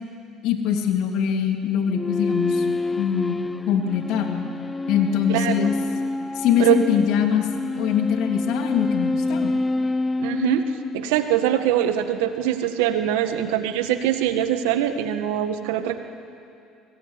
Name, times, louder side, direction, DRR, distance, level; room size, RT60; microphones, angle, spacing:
voice 1, 0.4-2.6 3.0-3.4 3.7-4.4 4.9-5.7 6.3-7.5 7.8-9.5, left 8 dB, 70° left, 4 dB, 3.1 m, -22 dB
sound 1, 1.9-11.5, left 2 dB, 20° left, 0.7 m, -27 dB
voice 2, 5.3-5.7 6.6-6.8 10.2-16.0, right 11 dB, 85° right, 8 dB, 1.7 m, -23 dB
25.0 x 20.0 x 9.9 m, 2.6 s
supercardioid pair, 80°, 0 cm